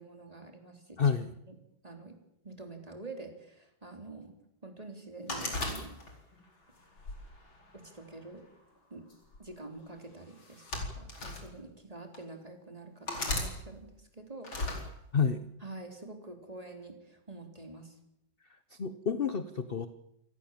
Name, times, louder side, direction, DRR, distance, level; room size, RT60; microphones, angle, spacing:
voice 1, 0.0-1.2 1.4-1.6 1.8-2.2 2.4-4.3 4.6-6.0 7.7-8.5 8.9-9.1 9.4-14.5 15.6-18.0, right 2 dB, 20° right, 4 dB, 3.5 m, -47 dB
voice 2, 1.0-1.3 15.1-15.4 18.8-19.9, left 6 dB, 40° left, 11 dB, 0.8 m, -29 dB
sound 1, 5.3-6.4 7.0-8.1 9.1-9.4 10.4-11.4 12.1-12.2 13.1-13.5 14.4-14.8, left 2 dB, 85° left, 5.3 m, -36 dB
27.5 x 18.5 x 7.4 m, 0.81 s
omnidirectional pair, 2.1 m